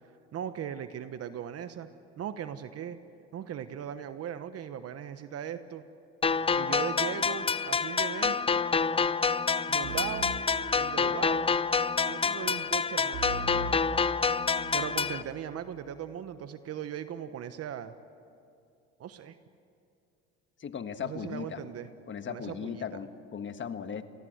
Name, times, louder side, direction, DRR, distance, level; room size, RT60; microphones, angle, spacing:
voice 1, 0.3-1.9 2.2-3.0 3.3-5.8 6.5-8.4 9.7-10.3 10.7-11.5 12.0-13.7 14.7-17.9 19.0-19.4 21.0-21.9 22.3-22.8, right 9 dB, 55° right, 11 dB, 1.1 m, -38 dB
sound 1, 6.2-15.2, left 5 dB, 20° left, 0.6 m, -27 dB
sound 2, 9.8-11.4 13.1-14.9, right 4 dB, 85° right, 4.2 m, -40 dB
voice 2, 20.6-21.6 22.1-24.0, left 7 dB, 40° left, 9 dB, 1.6 m, -37 dB
27.5 x 21.0 x 8.0 m, 2.4 s
supercardioid pair, 95°, 30 cm